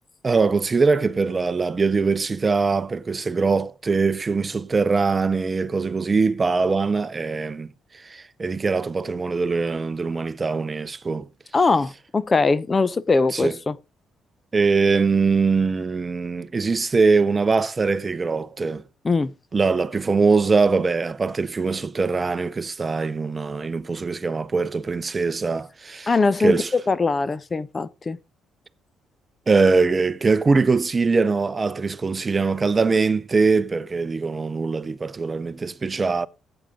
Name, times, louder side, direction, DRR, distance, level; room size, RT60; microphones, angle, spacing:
voice 1, 0.2-7.7 8.0-11.3 13.3-13.5 14.5-18.8 19.5-26.1 26.4-26.7 29.5-36.3, right 4 dB, 30° right, 0.7 m, -22 dB
voice 2, 11.5-13.8 19.0-19.3 26.1-28.2, left 3 dB, 30° left, 0.8 m, -21 dB
14.0 x 8.9 x 3.8 m
cardioid pair, 90°, 0 cm